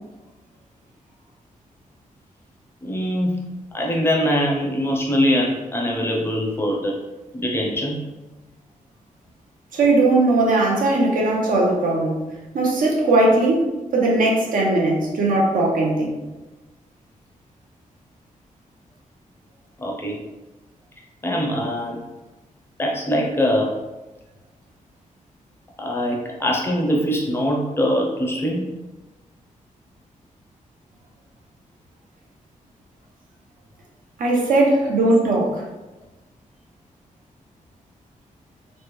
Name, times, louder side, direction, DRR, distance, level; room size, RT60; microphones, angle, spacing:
voice 1, 2.8-3.5 3.7-7.0 7.3-8.0 19.8-20.2 21.2-22.0 22.8-23.7 25.8-28.7, equal, 15° left, -2 dB, 0.5 m, -22 dB
voice 2, 9.7-12.2 12.5-16.2 34.2-35.7, right 2 dB, 80° right, -2 dB, 0.8 m, -19 dB
3.2 x 2.1 x 3.0 m, 1.1 s
wide cardioid pair, 175°, 14 cm